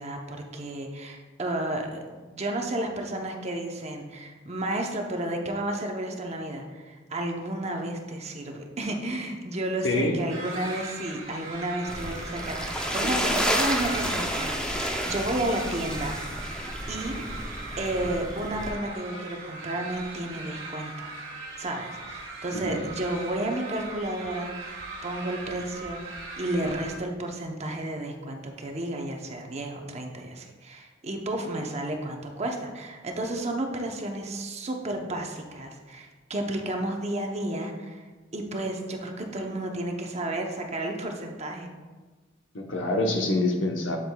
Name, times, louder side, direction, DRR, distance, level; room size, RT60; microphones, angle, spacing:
voice 1, 0.0-16.2 16.9-17.2 17.8-21.1 21.6-24.5 25.0-38.0 38.3-41.7, right 1 dB, 35° right, 2 dB, 0.8 m, -32 dB
voice 2, 9.8-10.2 22.5-22.8 42.5-44.0, left 2 dB, 65° left, 3 dB, 0.9 m, -26 dB
sound 1, 10.3-26.9, right 3 dB, 75° right, 1.7 m, -39 dB
sound 2, 11.9-18.7, equal, 5° left, 0.5 m, -31 dB
8.2 x 7.5 x 2.3 m, 1.3 s
head